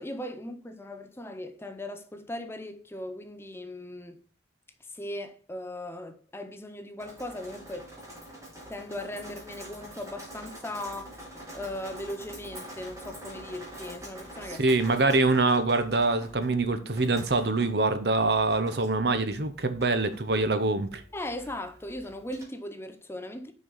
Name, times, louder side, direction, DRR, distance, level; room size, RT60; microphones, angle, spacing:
voice 1, 0.0-4.2 4.9-7.9 8.7-11.1 11.5-14.6 21.1-23.5, left 1 dB, 15° left, 0.6 m, -38 dB
Drip, 7.0-22.4, equal, 15° right, 2.4 m, -46 dB
voice 2, 14.6-21.0, right 3 dB, 60° right, 0.9 m, -24 dB
6.4 x 5.3 x 5.5 m
head